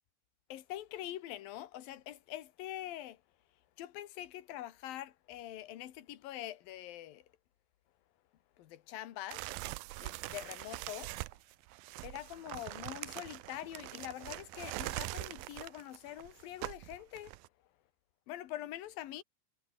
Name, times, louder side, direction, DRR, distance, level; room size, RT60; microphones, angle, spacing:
voice 1, 0.5-3.2 3.8-7.2 8.6-9.5 10.0-11.1 12.0-17.3 18.3-19.2, left 13 dB, 65° left, 3.1 m, -44 dB
sound 1, 9.3-17.5, right 19 dB, 80° right, 2.1 m, -43 dB
omnidirectional pair, 4.9 m